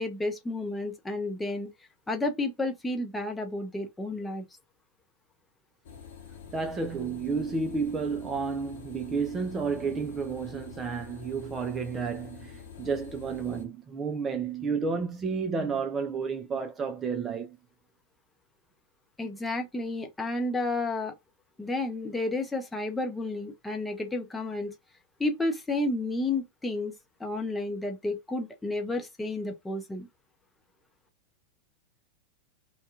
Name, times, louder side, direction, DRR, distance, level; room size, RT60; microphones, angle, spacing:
voice 1, 0.0-1.7 2.1-4.4 19.2-21.1 21.6-24.7 25.2-26.9 27.2-30.1, left 2 dB, 10° left, 0.7 m, -31 dB
sound 1, 5.8-13.6, left 7 dB, 55° left, 0.8 m, -47 dB
voice 2, 6.5-17.6, right 5 dB, 20° right, 0.4 m, -31 dB
2.7 x 2.2 x 2.3 m
figure-of-eight pair, 90°, 0 cm